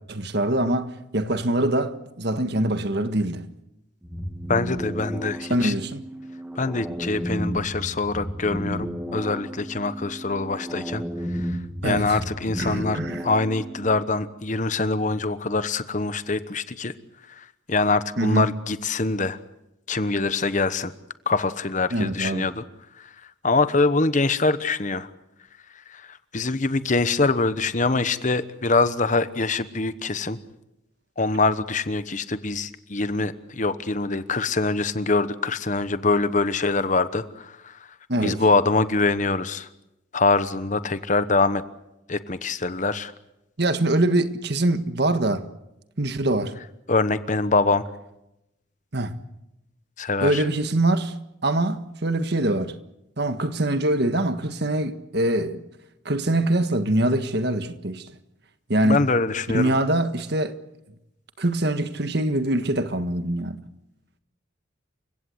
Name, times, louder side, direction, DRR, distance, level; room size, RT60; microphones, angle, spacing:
voice 1, 0.1-3.5 5.5-6.0 11.8-12.2 12.6-13.2 18.2-18.5 21.9-22.5 38.1-38.4 43.6-45.5 46.0-46.6 48.9-49.1 50.2-51.1 51.4-52.8 53.2-55.6 56.0-58.1 58.7-59.0 59.5-60.5 61.4-63.6, right 1 dB, 55° right, 1.6 m, -23 dB
sound 1, 4.0-14.0, equal, 10° right, 2.3 m, -33 dB
voice 2, 4.5-5.7 6.6-11.0 11.3-16.9 17.3-19.4 19.9-20.9 21.3-22.6 23.0-23.1 23.4-25.1 25.9-30.4 31.2-37.8 38.2-39.7 40.1-41.6 42.1-43.1 46.9-47.8 50.0-50.4 58.8-59.7, left 3 dB, 40° left, 1.1 m, -24 dB
29.0 x 16.5 x 8.0 m
head